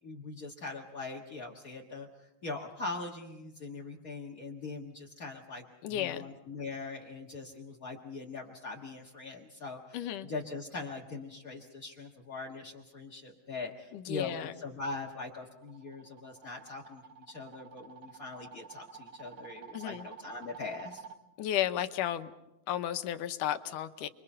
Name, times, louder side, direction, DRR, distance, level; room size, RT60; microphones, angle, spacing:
voice 1, 0.0-5.6 5.9-10.0 10.2-21.0, left 3 dB, 45° left, -2 dB, 1.1 m, -42 dB
voice 2, 5.8-6.3 9.9-10.3 13.9-14.5 19.7-20.1 21.4-22.3 22.7-24.1, left 11 dB, 75° left, 9 dB, 2.4 m, -33 dB
sound 1, 15.2-21.2, right 6 dB, 75° right, 1.2 m, -50 dB
29.5 x 22.5 x 5.5 m, 0.93 s
omnidirectional pair, 3.9 m